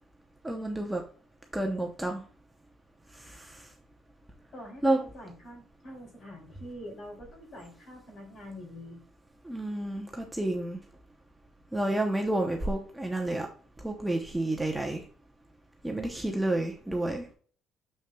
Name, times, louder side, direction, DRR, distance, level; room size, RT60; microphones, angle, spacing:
voice 1, 0.4-1.0 1.5-2.2 3.1-3.7 4.8-5.0 9.4-10.8 11.7-13.5 13.8-15.1 15.8-17.3, right 1 dB, 5° right, 2 dB, 0.7 m, -30 dB
voice 2, 4.5-9.0, equal, 40° left, 1 dB, 2.9 m, -45 dB
6.7 x 6.2 x 2.3 m, 0.42 s
cardioid pair, 150°, 0 cm